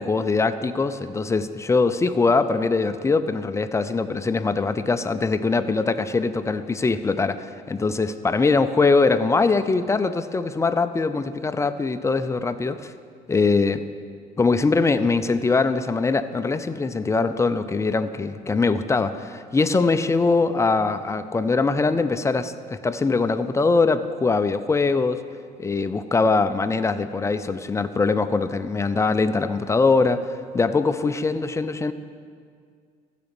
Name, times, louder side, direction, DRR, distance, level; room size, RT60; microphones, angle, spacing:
voice 1, 0.0-12.9 13.3-13.8 14.4-25.2 25.6-31.9, left 4 dB, 15° left, 11 dB, 0.5 m, -22 dB
15.0 x 5.0 x 7.0 m, 2.1 s
cardioid pair, 110°, 17 cm